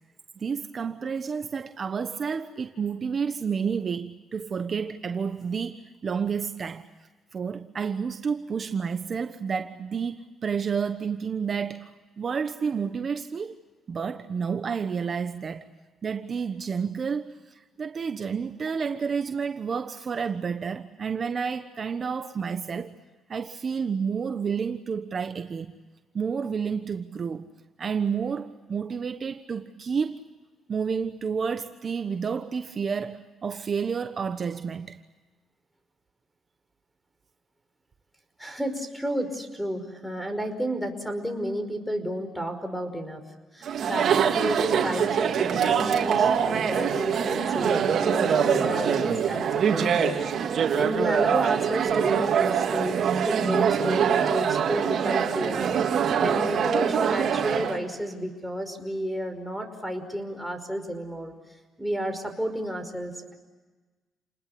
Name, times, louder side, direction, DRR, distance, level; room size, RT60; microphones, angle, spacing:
voice 1, 0.4-6.9 7.3-13.6 13.9-15.7 16.0-23.0 23.3-25.7 26.1-27.5 27.8-30.2 30.7-35.0, right 6 dB, 45° right, 1.2 m, -30 dB
voice 2, 38.4-43.2 43.5-53.0 53.2-61.3 61.8-63.3, equal, ahead, 5.2 m, -31 dB
Chatter, 43.6-57.8, right 7 dB, 60° right, 3.0 m, -24 dB
29.5 x 20.5 x 8.6 m
cardioid pair, 90°, 0 cm